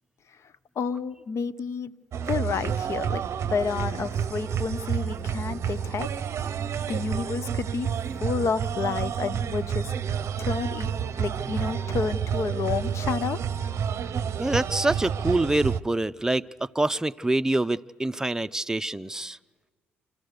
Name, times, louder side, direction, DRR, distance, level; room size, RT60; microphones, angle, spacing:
voice 1, 0.8-1.9 2.3-3.2 3.5-6.1 6.9-7.9 8.2-9.9 10.4-13.4, left 5 dB, 55° left, 15 dB, 0.8 m, -30 dB
sound 1, 2.1-15.8, right 8 dB, 50° right, 0.7 m, -29 dB
voice 2, 14.4-16.4 16.7-19.4, right 2 dB, 10° right, 12 dB, 0.6 m, -25 dB
28.0 x 14.0 x 6.7 m, 1.5 s
hypercardioid pair, 50°, 6 cm